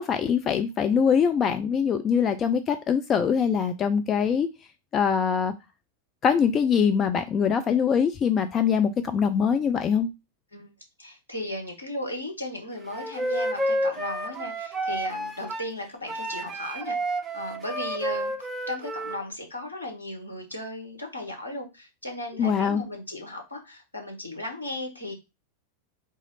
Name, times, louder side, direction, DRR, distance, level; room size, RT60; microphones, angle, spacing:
voice 1, 0.0-4.5 4.9-5.5 6.2-10.1 22.4-22.8, left 7 dB, 25° left, 8 dB, 0.4 m, -23 dB
voice 2, 11.0-17.0 17.3-18.3 18.7-25.1, left 1 dB, 80° left, 1 dB, 1.4 m, -36 dB
Wind instrument woodwind instrument, 12.9-15.7 16.1-19.2, right 1 dB, 15° right, 0.7 m, -30 dB
3.7 x 3.0 x 4.0 m, 0.25 s
figure-of-eight pair, 90°, 0 cm